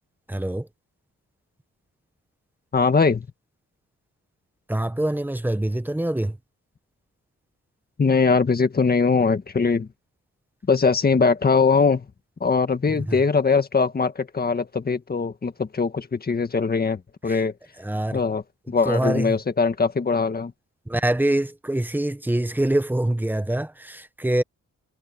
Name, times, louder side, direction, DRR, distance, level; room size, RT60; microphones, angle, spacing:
voice 1, 0.3-0.7 4.7-6.4 12.9-13.2 17.3-17.4 17.8-18.2 18.8-19.4 20.9-24.4, right 1 dB, 5° right, 0.9 m, -24 dB
voice 2, 2.7-3.3 8.0-9.9 10.7-12.1 12.4-17.5 18.1-20.5, left 4 dB, 30° left, 1.7 m, -21 dB
wide cardioid pair, 130°, 30 cm